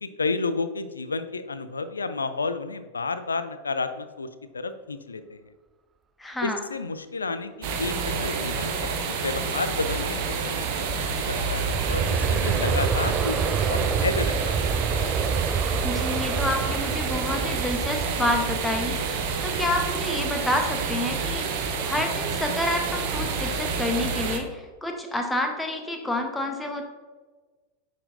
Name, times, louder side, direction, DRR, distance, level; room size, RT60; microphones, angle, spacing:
voice 1, 0.0-4.3 4.5-5.4 6.4-10.7 11.2-14.5, left 4 dB, 75° left, 11 dB, 0.4 m, -31 dB
voice 2, 6.2-6.6 15.8-26.8, left 1 dB, 5° left, 4 dB, 0.9 m, -29 dB
sound 1, 7.6-24.4, right 5 dB, 45° right, 0.8 m, -29 dB
Aircraft, 10.8-21.4 21.9-22.0, right 6 dB, 20° right, 0.3 m, -29 dB
9.6 x 4.2 x 2.6 m, 1.3 s
figure-of-eight pair, 90°, 0 cm